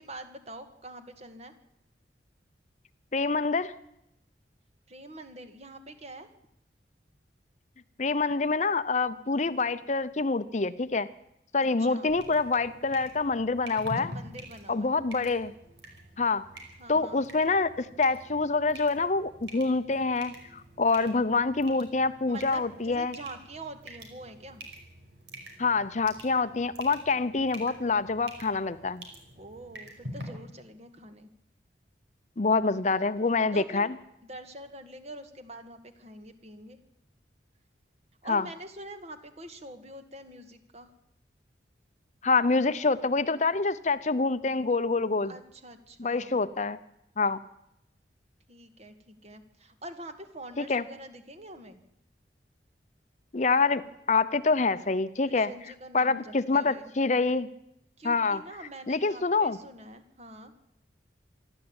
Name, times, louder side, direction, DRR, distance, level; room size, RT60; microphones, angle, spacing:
voice 1, 0.0-1.6 4.9-6.3 11.8-12.1 14.0-14.9 16.8-17.2 22.3-24.6 29.4-31.3 33.5-33.9 34.2-36.8 38.2-40.9 45.3-46.5 48.5-51.8 55.3-56.9 58.0-60.5, right 1 dB, 35° right, 9 dB, 2.0 m, -45 dB
voice 2, 3.1-3.7 8.0-11.1 11.5-14.1 14.7-15.5 16.2-16.4 16.9-23.1 25.6-29.0 32.4-33.9 38.3-38.4 42.2-45.3 46.0-46.8 47.2-47.4 50.6-50.8 53.3-53.8 54.1-55.5 55.9-57.5 58.0-58.4 58.9-59.6, left 3 dB, 40° left, 14 dB, 0.7 m, -26 dB
sound 1, 12.1-30.2, right 1 dB, 85° right, 5.3 m, -47 dB
26.5 x 12.0 x 8.9 m, 0.81 s
head